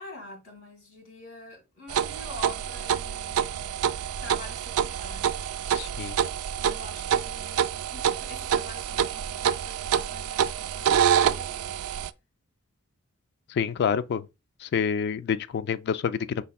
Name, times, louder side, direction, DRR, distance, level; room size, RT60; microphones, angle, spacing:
voice 1, 0.0-3.7 4.2-5.5 6.6-11.8, left 2 dB, 65° left, 1.9 m, -46 dB
sound 1, 1.9-12.1, right 8 dB, 75° right, 0.3 m, -27 dB
voice 2, 5.7-6.2 13.5-14.3 14.6-16.4, left 7 dB, 50° left, 0.3 m, -27 dB
5.4 x 4.2 x 2.3 m
head